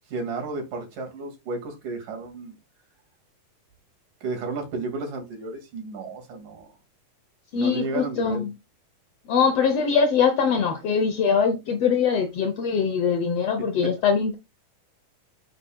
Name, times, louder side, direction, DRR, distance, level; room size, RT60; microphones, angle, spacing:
voice 1, 0.1-2.6 4.2-6.7 7.6-8.4, right 3 dB, 75° right, 3.7 m, -32 dB
voice 2, 7.5-8.5 9.3-14.4, left 6 dB, 65° left, 1.6 m, -22 dB
8.1 x 7.3 x 2.3 m
omnidirectional pair, 3.7 m